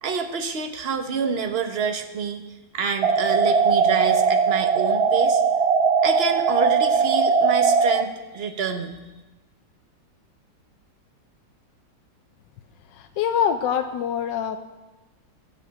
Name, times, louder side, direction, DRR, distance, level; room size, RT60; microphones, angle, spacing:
voice 1, 0.0-2.4 2.7-5.4 6.0-9.0, right 5 dB, 40° right, 6 dB, 1.1 m, -27 dB
sound 1, 3.0-8.0, right 5 dB, 75° right, 0.6 m, -19 dB
voice 2, 12.9-14.6, left 8 dB, 85° left, 7 dB, 1.3 m, -24 dB
13.0 x 7.1 x 8.8 m, 1.1 s
omnidirectional pair, 1.9 m